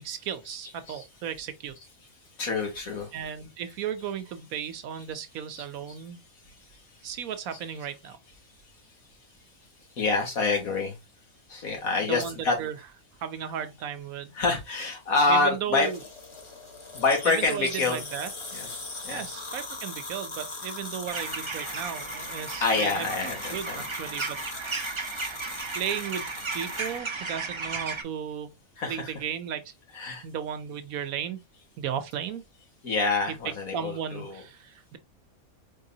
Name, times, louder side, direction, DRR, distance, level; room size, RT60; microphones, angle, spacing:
voice 1, 0.0-1.7 3.1-6.2 7.0-8.2 12.0-12.8 13.2-14.3 15.3-16.0 17.2-18.7 19.1-25.4 25.7-28.6 28.9-29.7 30.2-31.4 31.8-32.4 33.3-33.4 33.7-35.0, right 8 dB, 75° right, 1.1 m, -35 dB
voice 2, 2.4-3.1 5.5-5.6 10.0-11.0 11.5-12.6 14.3-15.9 16.9-18.0 18.5-18.7 19.0-19.2 22.6-23.8 28.8-29.1 30.0-30.2 32.8-34.4, left 3 dB, 75° left, 2.0 m, -26 dB
sound 1, 15.8-27.0, left 3 dB, 30° left, 0.6 m, -39 dB
sound 2, 21.1-28.0, right 4 dB, 40° right, 0.4 m, -35 dB
4.7 x 3.6 x 2.7 m
omnidirectional pair, 1.5 m